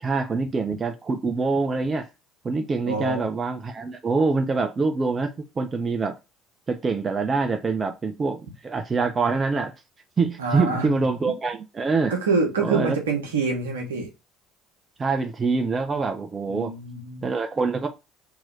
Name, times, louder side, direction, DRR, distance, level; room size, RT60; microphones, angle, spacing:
voice 1, 0.0-2.1 2.4-6.1 6.7-9.7 10.2-12.1 12.6-13.0 15.0-16.7 17.2-17.9, right 4 dB, 30° right, 0.6 m, -25 dB
voice 2, 2.9-3.2 10.4-10.9 11.3-11.4 12.1-14.1 16.5-17.2, right 4 dB, 80° right, 1.0 m, -26 dB
3.0 x 2.9 x 3.8 m
figure-of-eight pair, 60°, 0 cm